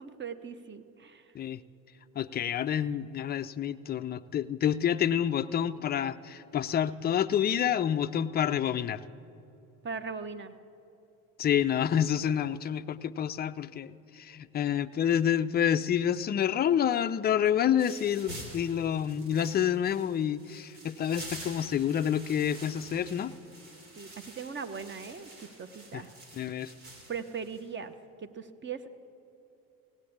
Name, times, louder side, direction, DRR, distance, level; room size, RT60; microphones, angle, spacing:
voice 1, 0.0-1.3 9.8-10.5 24.0-26.1 27.1-28.9, right 5 dB, 25° right, 10 dB, 0.9 m, -40 dB
voice 2, 2.2-9.0 11.4-23.3 25.9-26.0 26.4-26.7, left 9 dB, 25° left, 13 dB, 0.4 m, -28 dB
sound 1, 17.8-27.7, right 1 dB, 65° right, 3.1 m, -48 dB
17.0 x 8.1 x 8.6 m, 2.9 s
hypercardioid pair, 65°, 44 cm